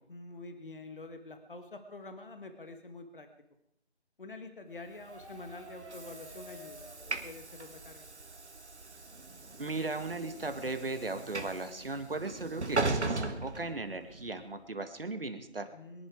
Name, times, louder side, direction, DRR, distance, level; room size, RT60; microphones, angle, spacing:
voice 1, 0.1-3.3 4.2-8.1 15.7-16.1, left 2 dB, 50° left, 7 dB, 1.5 m, -47 dB
sound 1, 5.0-10.6, right 1 dB, 30° right, 2.5 m, -55 dB
Train / Sliding door, 5.0-14.3, right 3 dB, 75° right, 1.8 m, -38 dB
voice 2, 9.6-15.7, right 3 dB, 55° right, 9 dB, 1.8 m, -37 dB
23.0 x 11.0 x 4.7 m, 0.78 s
figure-of-eight pair, 175°, 34 cm